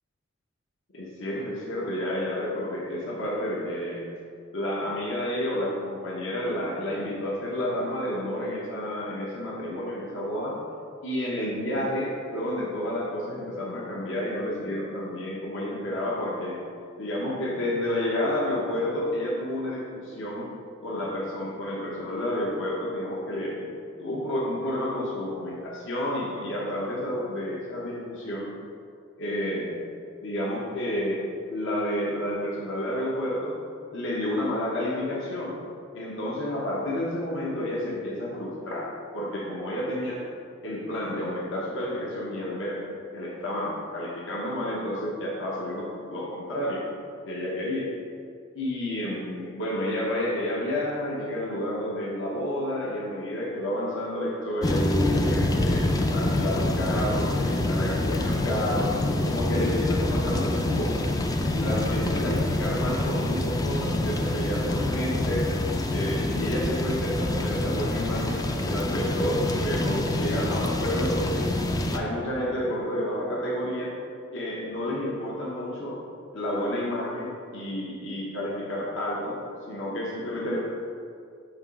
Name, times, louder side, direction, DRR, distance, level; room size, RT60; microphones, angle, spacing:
voice 1, 0.9-4.1 4.5-10.6 11.0-16.6 17.0-20.5 20.8-23.7 24.0-28.5 29.2-29.8 30.2-31.2 31.5-33.6 33.9-35.6 35.9-40.2 40.6-42.8 43.1-46.8 47.2-47.9 48.5-59.0 59.2-61.1 61.5-65.5 65.9-71.5 71.9-73.9 74.3-76.0 76.3-79.4 79.7-80.6, left 1 dB, 65° left, -4 dB, 1.0 m, -30 dB
sound 1, 54.6-72.0, left 1 dB, 20° left, 0.4 m, -26 dB
7.2 x 3.0 x 5.3 m, 2.4 s
head